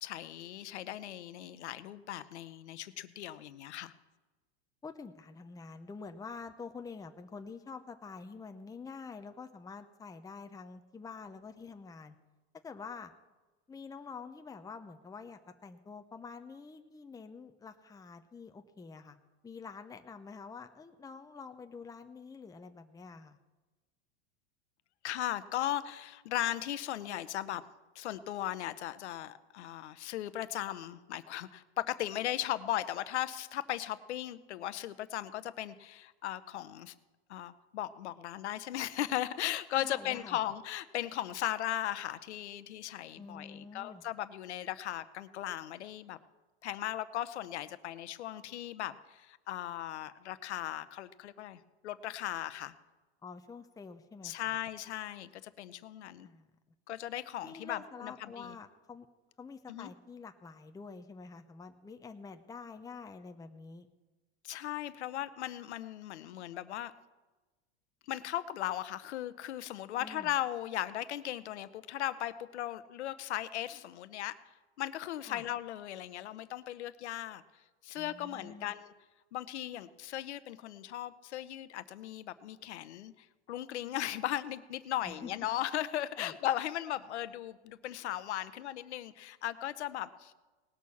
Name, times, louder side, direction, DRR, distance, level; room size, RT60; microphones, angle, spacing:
voice 1, 0.0-3.9 25.0-27.6 27.9-36.9 37.3-46.2 46.6-52.7 54.2-56.3 56.9-58.6 59.7-59.9 64.4-66.9 68.1-74.4 74.8-77.4 77.8-78.9 79.3-90.3, left 12 dB, 85° left, 14 dB, 0.8 m, -37 dB
voice 2, 4.8-12.1 12.6-13.1 13.7-19.2 19.4-23.4 39.8-40.4 43.2-44.0 53.2-54.6 56.2-56.4 57.4-59.1 59.4-63.9 70.0-70.3 75.3-75.4 78.0-78.7 85.0-85.3 86.2-86.3, left 5 dB, 10° left, 7 dB, 0.8 m, -47 dB
19.0 x 6.4 x 7.1 m, 1.2 s
hypercardioid pair, 100°, 33 cm